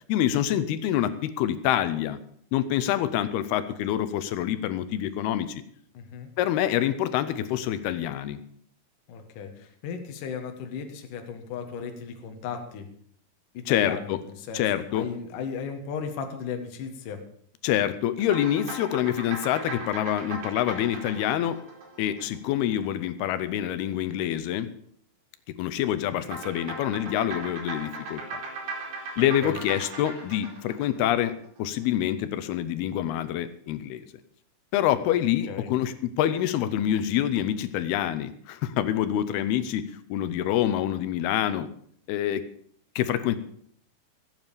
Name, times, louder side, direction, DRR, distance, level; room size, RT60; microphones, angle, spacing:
voice 1, 0.1-2.2 2.5-5.6 6.4-8.4 13.7-14.2 14.5-15.1 17.6-21.6 22.0-24.7 25.6-28.4 29.2-34.1 34.7-41.7 42.1-42.5 43.0-43.4, left 11 dB, 80° left, 13 dB, 2.7 m, -26 dB
voice 2, 5.9-6.3 9.1-12.9 13.5-14.6 14.9-17.2 26.0-26.2 29.4-29.6 35.5-35.7, left 6 dB, 60° left, 4 dB, 2.8 m, -36 dB
sound 1, 18.2-22.8 26.2-31.6, right 2 dB, 90° right, 5.7 m, -38 dB
15.5 x 9.1 x 7.0 m, 0.62 s
omnidirectional pair, 4.7 m